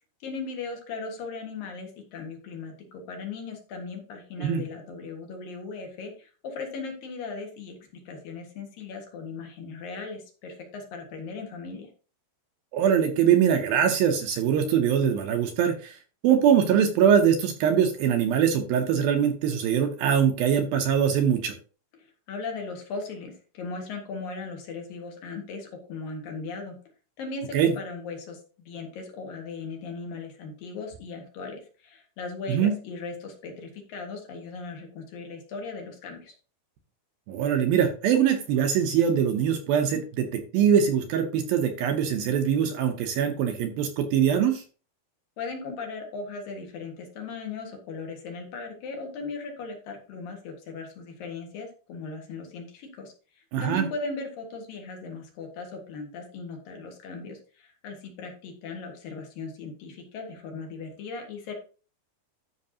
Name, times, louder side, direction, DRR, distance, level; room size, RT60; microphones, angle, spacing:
voice 1, 0.2-7.8 8.1-11.9 22.0-26.7 27.2-36.3 45.4-61.5, left 4 dB, 65° left, 2 dB, 3.1 m, -38 dB
voice 2, 12.7-16.0 16.2-21.6 27.5-27.7 32.5-32.7 37.3-44.6 53.5-53.9, right 8 dB, 75° right, 5 dB, 2.4 m, -23 dB
13.0 x 5.8 x 2.8 m, 0.37 s
omnidirectional pair, 4.8 m